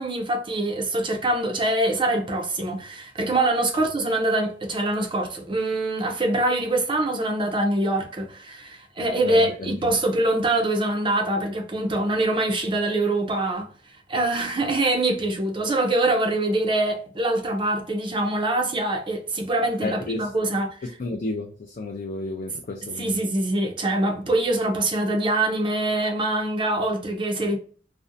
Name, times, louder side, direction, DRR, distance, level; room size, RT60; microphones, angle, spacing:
voice 1, 0.0-13.7 14.1-20.8 23.0-27.6, right 2 dB, 25° right, 0.5 m, -24 dB
voice 2, 9.2-9.9 19.8-20.3 21.0-23.2, left 2 dB, 45° left, 0.4 m, -32 dB
2.5 x 2.0 x 2.5 m
head